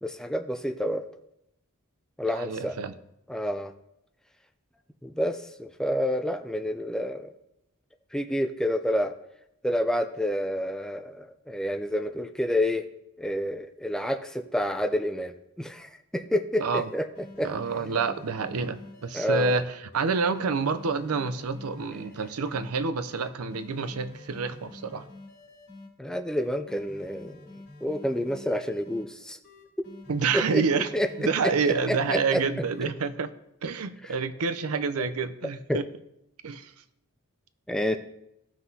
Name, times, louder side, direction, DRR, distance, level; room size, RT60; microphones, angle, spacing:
voice 1, 0.0-1.0 2.2-2.8 3.3-3.7 5.0-7.3 8.1-9.1 9.6-12.8 13.2-17.1 17.4-17.5 19.1-19.6 26.0-27.4 27.8-29.4 30.3-30.6 30.9-31.3 31.6-32.4 35.0-35.1 35.7-35.8 37.7-38.0, equal, 5° left, 7 dB, 0.4 m, -29 dB
voice 2, 2.3-2.9 16.6-16.9 17.4-25.1 30.1-30.9 31.2-33.3 33.6-35.8 36.4-36.7, right 4 dB, 85° right, 12 dB, 0.6 m, -28 dB
sound 1, 16.3-16.4 16.8-19.5 19.9-22.7 23.1-25.9 26.3-29.1 29.4-32.2 32.6-33.1, left 2 dB, 55° left, 3.0 m, -48 dB
15.5 x 5.9 x 2.8 m, 0.82 s
head